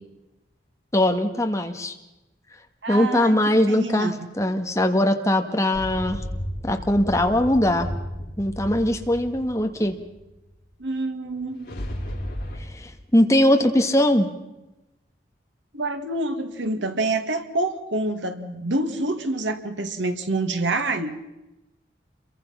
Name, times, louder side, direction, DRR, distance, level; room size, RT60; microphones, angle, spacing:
voice 1, 0.9-1.9 2.9-6.2 6.6-7.9 8.4-9.9 12.7-14.3, left 1 dB, 15° left, 5 dB, 1.8 m, -21 dB
voice 2, 2.8-3.4 3.7-4.1 10.8-11.7 15.7-21.1, right 2 dB, 85° right, 8 dB, 2.1 m, -27 dB
sound 1, 5.7-10.3 11.2-12.6, equal, 50° left, 6.6 m, -33 dB
29.5 x 23.0 x 5.8 m, 0.98 s
head